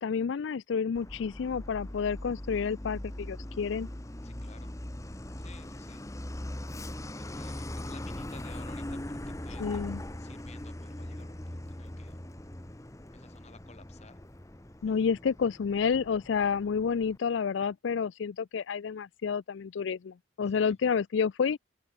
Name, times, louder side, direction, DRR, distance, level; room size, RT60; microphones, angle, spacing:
voice 1, 0.0-3.9 9.6-10.0 14.8-21.6, left 6 dB, 70° left, 0.4 m, -30 dB
Truck, 1.0-17.2, left 1 dB, 15° left, 0.9 m, -41 dB
voice 2, 4.2-4.7 5.4-6.0 7.2-9.8 10.2-12.2 13.1-14.2 20.5-20.8, left 4 dB, 35° left, 1.6 m, -55 dB
open air
head